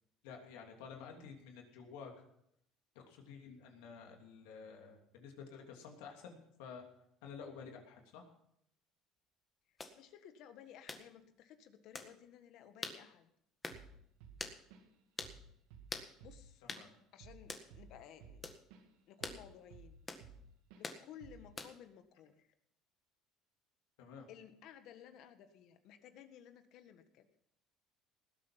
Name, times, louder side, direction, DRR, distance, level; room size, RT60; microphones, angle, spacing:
voice 1, 0.2-2.2 2.9-6.8 7.2-8.2 16.7-16.9 24.0-24.3, left 6 dB, 85° left, 2 dB, 3.0 m, -51 dB
voice 2, 9.7-13.3 16.2-16.6 17.1-18.4 19.1-20.0 20.7-22.5 24.3-27.3, left 9 dB, 65° left, 9 dB, 1.6 m, -56 dB
sound 1, 9.8-10.0 10.9-11.1 11.9-12.1 12.8-13.0 13.6-13.8 14.4-14.6 15.2-15.4 15.9-16.1 16.7-16.9 17.5-17.7 18.4-18.6 19.2-19.4 20.1-20.3 20.8-21.0 21.6-21.9, left 3 dB, 20° left, 1.7 m, -44 dB
Drum kit / Drum, 13.7-14.0 14.2-15.0 15.2-15.5 15.7-18.9 19.2-20.4 20.7-20.9 21.2-21.5, right 5 dB, 90° right, 2.3 m, -56 dB
19.0 x 8.3 x 5.8 m, 0.73 s
supercardioid pair, 105°, 0 cm